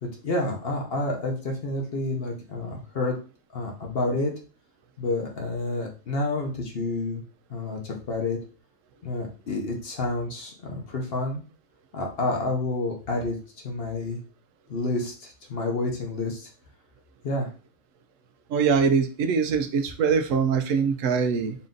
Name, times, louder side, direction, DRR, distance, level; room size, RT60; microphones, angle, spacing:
voice 1, 0.0-3.2 3.5-4.3 5.0-7.2 7.5-8.4 9.0-11.4 11.9-13.4 13.6-14.2 14.7-16.5 17.2-17.5, left 2 dB, 50° left, 1 dB, 1.1 m, -29 dB
voice 2, 18.5-21.6, right 6 dB, 75° right, 6 dB, 1.0 m, -23 dB
4.2 x 2.6 x 3.7 m, 0.35 s
omnidirectional pair, 1.4 m